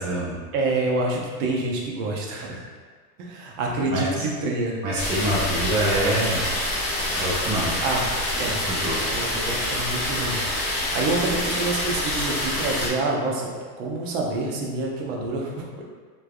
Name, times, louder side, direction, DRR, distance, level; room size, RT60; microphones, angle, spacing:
voice 1, 0.0-0.4 3.9-4.3 4.8-6.5 7.1-7.7 8.3-9.0, right 1 dB, 20° right, -6 dB, 0.4 m, -26 dB
voice 2, 0.5-2.6 3.2-4.8 7.8-8.0 8.4-10.4 10.7-15.8, right 2 dB, 60° right, -1 dB, 0.7 m, -27 dB
sound 1, 5.0-12.9, left 1 dB, 40° left, 0.9 m, -26 dB
3.2 x 2.3 x 2.3 m, 1.5 s
supercardioid pair, 145°, 45 cm